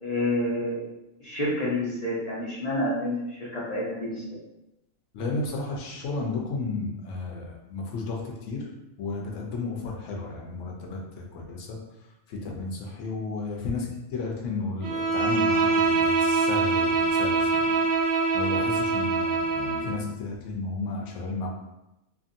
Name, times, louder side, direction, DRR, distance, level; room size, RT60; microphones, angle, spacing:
voice 1, 0.0-0.8 1.2-4.4, left 1 dB, 40° left, -8 dB, 0.6 m, -29 dB
voice 2, 5.1-8.6 9.0-11.8 12.3-21.5, left 3 dB, 70° left, 0 dB, 0.9 m, -33 dB
Bowed string instrument, 14.8-20.0, right 4 dB, 55° right, 1.0 m, -24 dB
2.8 x 2.6 x 2.5 m, 0.93 s
omnidirectional pair, 1.4 m